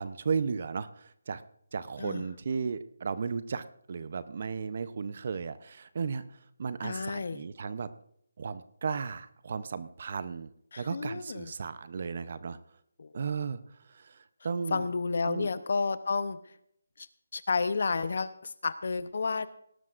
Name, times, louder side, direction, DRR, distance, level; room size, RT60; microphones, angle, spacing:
voice 1, 0.0-1.4 1.7-7.9 8.4-12.6 13.1-14.9 15.2-15.5, right 5 dB, 45° right, 14 dB, 0.6 m, -35 dB
voice 2, 6.8-7.4 10.7-11.5 13.0-13.1 14.7-16.4 17.0-17.1 17.3-19.5, left 4 dB, 55° left, 15 dB, 0.7 m, -31 dB
18.5 x 12.0 x 2.5 m, 0.70 s
figure-of-eight pair, 170°, 0 cm